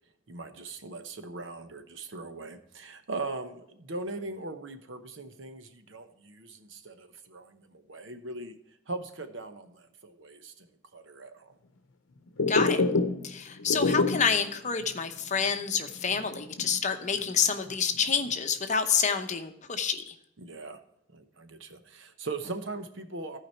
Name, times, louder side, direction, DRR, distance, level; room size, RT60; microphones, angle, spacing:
voice 1, 0.3-8.6 8.9-11.6 20.4-20.8 21.1-23.4, right 3 dB, 65° right, 8 dB, 1.0 m, -40 dB
sound 1, 12.3-13.3 13.6-14.4 14.8-14.9 15.3-15.4 15.9-17.3 17.7-18.3, left 3 dB, 75° left, 0.8 m, -27 dB
voice 2, 12.5-12.8 13.2-20.1, left 6 dB, 35° left, 7 dB, 0.8 m, -28 dB
15.0 x 5.0 x 4.5 m, 0.80 s
head